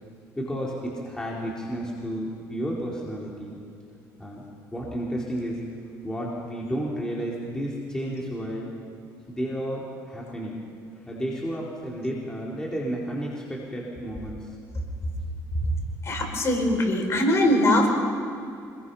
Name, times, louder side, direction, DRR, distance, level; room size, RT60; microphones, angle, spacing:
voice 1, 0.4-3.6 4.2-4.4 4.7-5.6 6.0-8.7 9.3-10.6 10.9-14.4, equal, 10° left, -4 dB, 4.2 m, -32 dB
voice 2, 16.0-17.9, left 1 dB, 40° left, 2 dB, 5.2 m, -21 dB
26.5 x 21.5 x 5.8 m, 2.5 s
cardioid pair, 105°, 7 cm